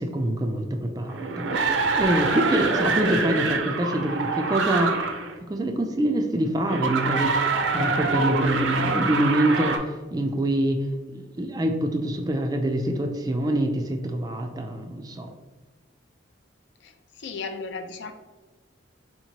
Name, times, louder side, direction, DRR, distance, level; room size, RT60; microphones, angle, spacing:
voice 1, 0.0-4.9 5.4-7.5 7.7-15.3, right 1 dB, 20° right, 4 dB, 0.3 m, -25 dB
sound 1, 1.1-5.3 6.7-9.8, right 4 dB, 75° right, 0.5 m, -25 dB
voice 2, 17.2-18.1, left 4 dB, 65° left, 7 dB, 0.4 m, -34 dB
4.3 x 2.9 x 2.8 m, 1.3 s
head